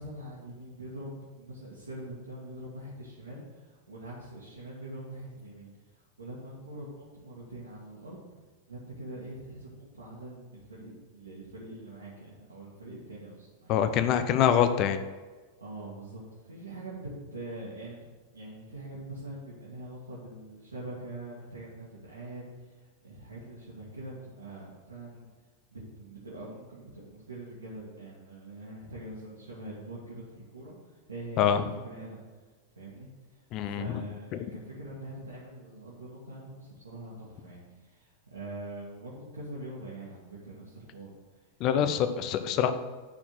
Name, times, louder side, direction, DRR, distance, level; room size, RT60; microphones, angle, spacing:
voice 1, 0.0-8.2 8.7-13.7 15.6-18.0 18.3-25.3 25.7-31.5 31.8-32.2 32.7-41.1 41.3-42.2, right 1 dB, 75° right, -6 dB, 1.7 m, -44 dB
voice 2, 13.7-15.0 31.4-31.6 33.5-33.9 41.6-42.7, left 9 dB, 40° left, 10 dB, 0.7 m, -25 dB
9.8 x 4.4 x 6.3 m, 1.3 s
figure-of-eight pair, 90°, 0 cm